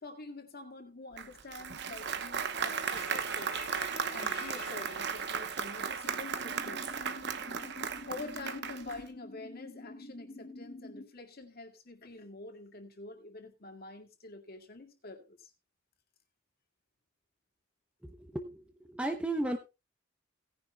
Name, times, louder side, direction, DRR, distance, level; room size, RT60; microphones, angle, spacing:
voice 1, 0.0-3.5 4.1-6.9 8.1-15.5, left 3 dB, 50° left, 4 dB, 2.1 m, -47 dB
Applause, 1.2-9.1, right 6 dB, 60° right, 1.0 m, -36 dB
sound 1, 2.6-7.2, left 5 dB, 70° left, 1.8 m, -48 dB
sound 2, 6.0-11.0, left 2 dB, 35° left, 2.2 m, -47 dB
voice 2, 18.0-19.6, right 1 dB, 5° right, 4 dB, 0.8 m, -35 dB
17.5 x 10.5 x 2.3 m, 0.26 s
head